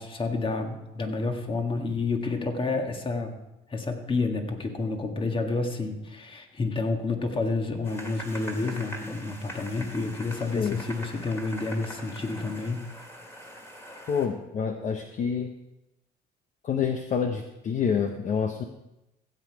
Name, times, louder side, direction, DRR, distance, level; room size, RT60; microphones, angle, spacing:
voice 1, 0.0-3.3 3.7-12.8, left 3 dB, 30° left, 4 dB, 1.8 m, -29 dB
sound 1, 7.8-14.3, equal, 15° left, 2.4 m, -42 dB
voice 2, 14.1-15.5 16.6-18.6, left 6 dB, 45° left, 6 dB, 0.9 m, -27 dB
15.0 x 8.4 x 4.7 m, 0.93 s
cardioid pair, 110°, 17 cm